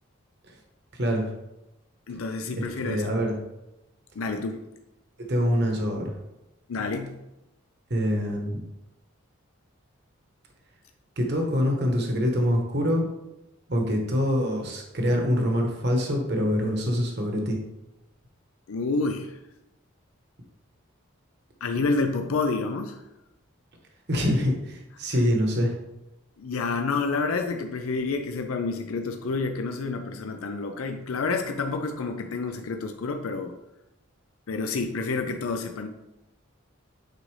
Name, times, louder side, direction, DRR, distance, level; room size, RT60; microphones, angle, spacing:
voice 1, 2.1-3.1 4.2-4.6 6.7-7.1 18.7-19.4 21.6-23.0 26.4-33.5 34.5-35.9, left 3 dB, 85° left, 5 dB, 0.5 m, -29 dB
voice 2, 2.6-3.4 5.3-6.1 7.9-8.6 11.2-13.0 13.7-17.6 24.1-25.8, equal, 50° right, 2 dB, 1.1 m, -25 dB
9.0 x 3.9 x 3.2 m, 0.94 s
head